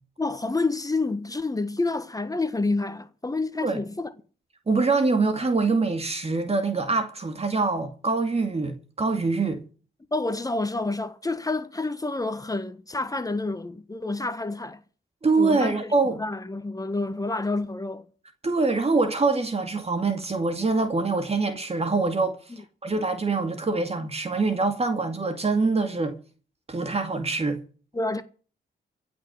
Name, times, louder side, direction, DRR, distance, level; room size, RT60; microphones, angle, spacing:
voice 1, 0.2-4.1 10.1-14.8 15.4-15.9 16.2-18.0 27.9-28.2, left 3 dB, 20° left, 1.4 m, -28 dB
voice 2, 4.7-9.6 15.2-16.2 18.4-22.4 22.8-26.2 26.7-27.6, right 3 dB, 35° right, 2.3 m, -24 dB
15.5 x 6.4 x 9.9 m
cardioid pair, 70°, 19 cm